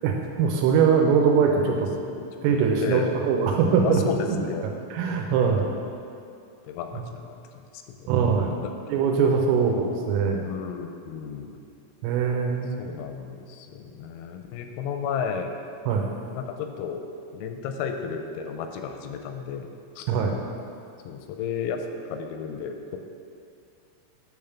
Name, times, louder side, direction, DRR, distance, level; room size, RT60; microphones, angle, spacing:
voice 1, 0.0-1.9 2.4-4.0 4.9-5.7 7.0-7.1 8.1-8.5 8.9-10.4 12.0-12.8 15.9-16.1 20.1-20.3, right 6 dB, 85° right, 1 dB, 3.2 m, -22 dB
voice 2, 1.6-2.5 2.8-3.2 3.8-4.7 5.6-5.8 6.6-7.7 8.0-8.1 8.5-8.6 8.9-9.0 10.4-11.5 12.8-15.5 16.3-17.0 17.3-19.7 20.0-20.1 21.0-23.0, left 6 dB, 90° left, 5 dB, 3.3 m, -33 dB
10.0 x 3.6 x 7.0 m, 2.4 s
omnidirectional pair, 6.0 m